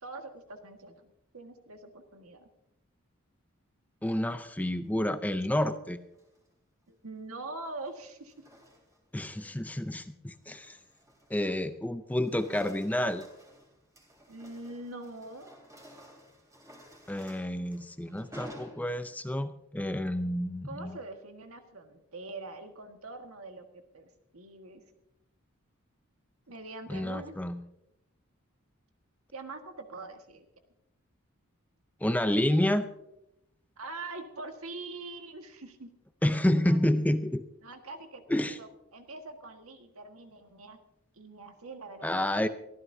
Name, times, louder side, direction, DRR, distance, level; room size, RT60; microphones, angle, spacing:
voice 1, 0.0-2.5 6.9-8.5 14.3-15.5 20.6-24.1 24.3-24.8 26.5-27.4 29.3-30.5 33.8-35.9 36.6-36.8 37.6-40.8 41.1-42.4, right 2 dB, 75° right, 5 dB, 1.7 m, -44 dB
voice 2, 4.0-6.0 9.1-10.8 11.3-13.3 17.1-21.0 26.9-27.6 32.0-32.9 36.2-37.4 38.3-38.6 42.0-42.5, left 1 dB, 5° left, 10 dB, 0.5 m, -29 dB
sound 1, 6.0-6.5 7.6-9.1 9.6-9.9 10.3-11.8 12.0-19.4, equal, 15° right, 3.1 m, -53 dB
24.0 x 14.0 x 2.7 m, 0.85 s
head